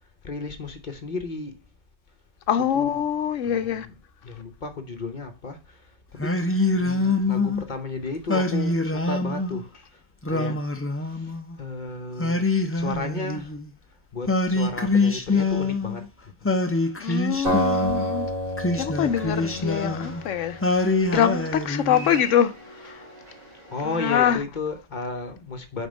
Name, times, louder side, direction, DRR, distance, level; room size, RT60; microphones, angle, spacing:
voice 1, 0.2-1.5 2.7-2.9 3.5-3.9 4.2-5.6 6.1-9.9 10.3-10.6 11.2-11.3 11.6-12.4 12.7-13.5 14.1-16.0 17.0-17.2 23.7-25.9, left 3 dB, 40° left, 0.8 m, -33 dB
voice 2, 2.5-3.9 17.0-18.3 18.7-22.5 22.8-23.0 23.8-24.4, left 9 dB, 70° left, 0.9 m, -24 dB
Singing, 6.2-7.7 8.3-9.6 10.2-11.5 12.2-13.7 14.3-16.0 16.4-18.1 18.6-20.2 20.6-22.2, left 2 dB, 20° left, 0.3 m, -25 dB
Acoustic guitar, 17.4-20.6, equal, 85° right, 3.3 m, -28 dB
sound 1, 19.1-24.4, right 1 dB, 45° right, 2.3 m, -44 dB
5.3 x 4.3 x 5.0 m
omnidirectional pair, 1.4 m